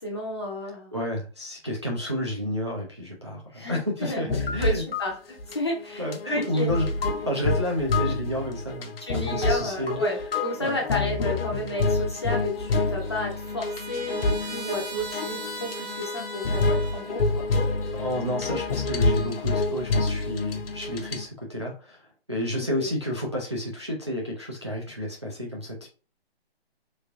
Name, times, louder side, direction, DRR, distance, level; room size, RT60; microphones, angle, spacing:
voice 1, 0.0-0.9 3.5-6.7 9.0-17.4 22.5-22.9, left 1 dB, 25° left, -1 dB, 0.6 m, -32 dB
voice 2, 0.9-4.8 6.0-6.9 7.3-10.0 10.6-10.8 17.9-22.0 22.3-25.9, equal, 25° right, -3 dB, 0.4 m, -31 dB
sound 1, 4.3-5.1 5.4-5.5 5.9-21.2, left 3 dB, 65° left, 0.7 m, -27 dB
Trumpet, 12.6-17.3, right 2 dB, 85° right, 1.5 m, -39 dB
3.3 x 3.1 x 2.4 m, 0.36 s
hypercardioid pair, 175°, 32 cm